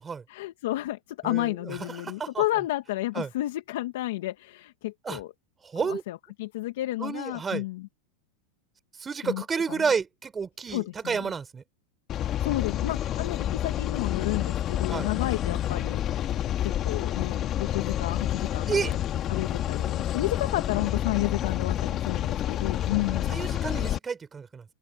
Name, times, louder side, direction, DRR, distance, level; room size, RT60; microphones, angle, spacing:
voice 1, 0.3-5.3 5.7-7.9 9.2-9.4 9.7-9.8 10.7-11.2 12.4-16.0 16.6-19.0 19.3-23.4, left 17 dB, 70° left, 1.6 m, -31 dB
voice 2, 1.2-2.4 3.1-3.3 5.0-5.2 5.6-6.0 7.0-7.6 9.0-11.6 14.9-15.1 18.7-18.9 23.3-24.6, right 5 dB, 15° right, 3.6 m, -31 dB
sound 1, 12.1-24.0, left 11 dB, 35° left, 1.6 m, -29 dB
open air
supercardioid pair, 135°, 0 cm